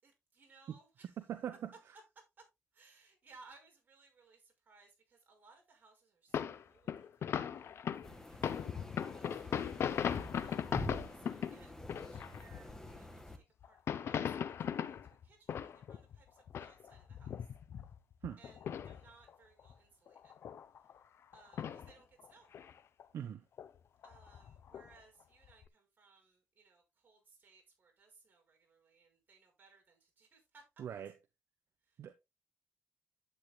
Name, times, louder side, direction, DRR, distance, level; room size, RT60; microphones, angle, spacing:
voice 1, 0.0-1.2 2.2-2.4 2.7-7.8 8.1-11.7 12.1-17.5 18.4-20.3 21.3-22.5 24.0-30.6 31.8-32.0, right 4 dB, 40° right, 5.9 m, -64 dB
voice 2, 1.3-1.7 18.2-18.4 23.1-23.4 30.8-31.1 32.0-32.1, right 9 dB, 70° right, 1.0 m, -41 dB
sound 1, 6.3-12.9 13.6-16.2 16.5-19.3 19.6-19.7 20.1-21.0 21.3-21.9 22.2-23.0 23.6-23.7 24.0-24.9 25.5-25.6, left 8 dB, 60° left, 0.7 m, -39 dB
sound 2, 8.0-13.4, left 1 dB, 10° left, 1.7 m, -47 dB
11.5 x 8.5 x 2.3 m
cardioid pair, 135°, 5 cm